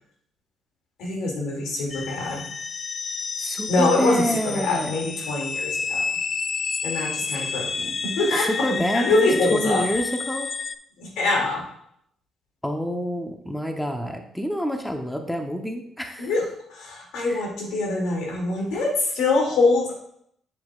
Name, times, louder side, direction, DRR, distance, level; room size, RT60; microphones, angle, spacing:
voice 1, 1.0-2.5 3.7-6.1 6.8-9.8 11.0-11.6 16.2-20.0, left 2 dB, 90° left, -1 dB, 2.5 m, -24 dB
sound 1, 1.9-10.7, left 5 dB, 45° left, 0.4 m, -30 dB
voice 2, 3.4-4.9 8.6-10.5 12.6-16.3 17.3-17.4, equal, 5° left, 4 dB, 0.9 m, -27 dB
7.7 x 7.6 x 2.5 m, 0.70 s
cardioid pair, 90°, 0 cm